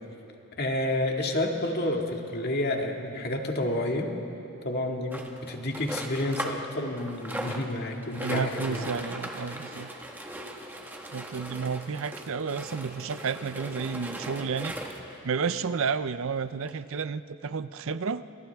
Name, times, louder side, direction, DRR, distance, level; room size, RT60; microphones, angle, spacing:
voice 1, 0.6-4.1 4.6-8.9, left 1 dB, 45° left, 2 dB, 2.0 m, -30 dB
sound 1, 5.1-6.7 7.0-15.1 15.8-15.9 16.1-16.2 16.7-16.8, right 1 dB, 10° right, 1.5 m, -38 dB
voice 2, 8.2-9.9 11.1-14.7 15.2-18.2, right 5 dB, 60° right, 13 dB, 0.5 m, -31 dB
29.5 x 27.5 x 3.5 m, 2.8 s
head